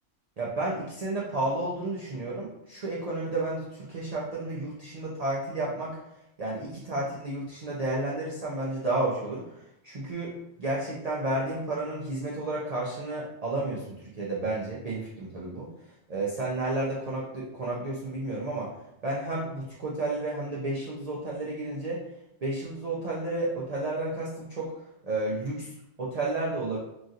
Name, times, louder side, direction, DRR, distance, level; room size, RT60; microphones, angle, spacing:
voice 1, 0.4-6.0 6.4-9.5 9.8-15.7 16.1-18.7 19.0-22.0 22.4-24.7 25.0-26.8, right 2 dB, 75° right, -5 dB, 0.3 m, -31 dB
3.0 x 2.6 x 2.4 m, 0.84 s
omnidirectional pair, 1.4 m